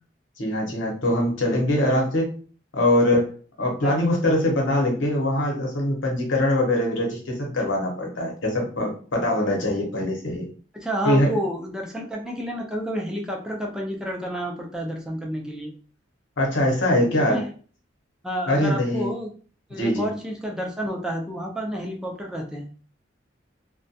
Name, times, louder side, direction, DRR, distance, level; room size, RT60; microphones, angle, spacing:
voice 1, 0.4-2.3 2.7-3.3 3.6-10.5 11.0-11.4 16.4-17.4 18.5-19.1 19.7-20.1, left 1 dB, 75° left, 0 dB, 0.9 m, -22 dB
voice 2, 10.7-15.7 17.2-17.5 18.2-19.3 19.7-22.7, equal, 5° right, -1 dB, 0.4 m, -30 dB
2.3 x 2.1 x 2.6 m, 0.40 s
head